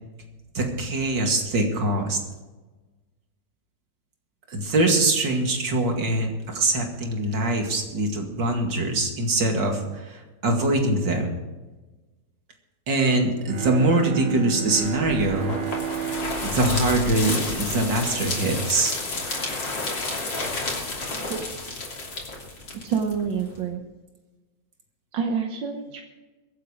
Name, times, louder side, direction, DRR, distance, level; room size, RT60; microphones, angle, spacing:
voice 1, 0.5-2.2 4.5-11.3 12.9-15.6 16.4-18.9, right 2 dB, 75° right, 2 dB, 2.9 m, -23 dB
Bowed string instrument, 13.4-18.3, right 9 dB, 45° right, 0.8 m, -33 dB
sound 1, 14.7-23.6, left 3 dB, 80° left, 3.8 m, -31 dB
voice 2, 21.1-21.4 22.8-23.8 25.1-26.0, right 6 dB, 90° right, 3 dB, 1.9 m, -28 dB
23.5 x 8.3 x 5.1 m, 1.2 s
omnidirectional pair, 2.0 m